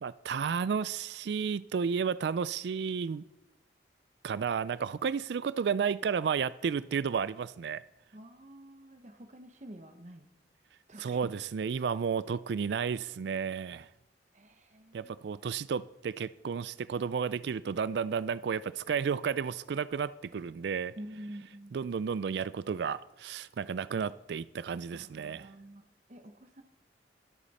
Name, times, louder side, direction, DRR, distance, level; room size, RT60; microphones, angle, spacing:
voice 1, 0.0-3.2 4.2-7.8 11.0-13.9 14.9-20.9 21.7-25.5, right 6 dB, 70° right, 0.3 m, -32 dB
voice 2, 8.1-10.3 10.9-11.2 14.3-15.2 21.0-21.8 24.9-25.8 26.1-26.6, right 1 dB, 40° right, 0.9 m, -48 dB
21.5 x 8.3 x 4.2 m
head